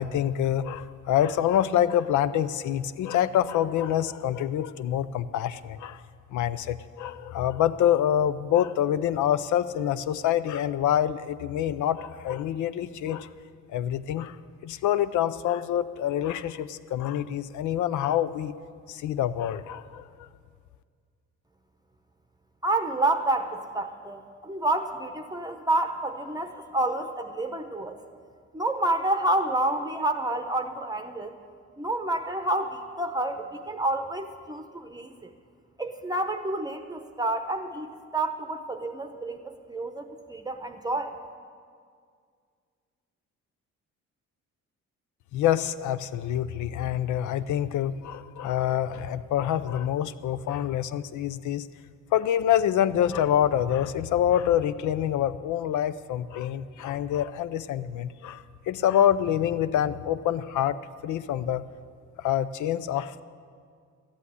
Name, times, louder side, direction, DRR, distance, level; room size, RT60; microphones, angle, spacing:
voice 1, 0.0-6.0 6.3-13.3 13.7-14.4 14.6-18.5 18.9-20.3 45.3-51.7 52.1-61.6 62.2-63.2, left 10 dB, 75° left, 15 dB, 0.6 m, -26 dB
voice 2, 22.6-28.0 28.5-31.3 31.8-35.3 35.8-41.1, right 2 dB, 15° right, 6 dB, 0.8 m, -29 dB
13.0 x 8.4 x 9.6 m, 2.1 s
cardioid pair, 90°, 30 cm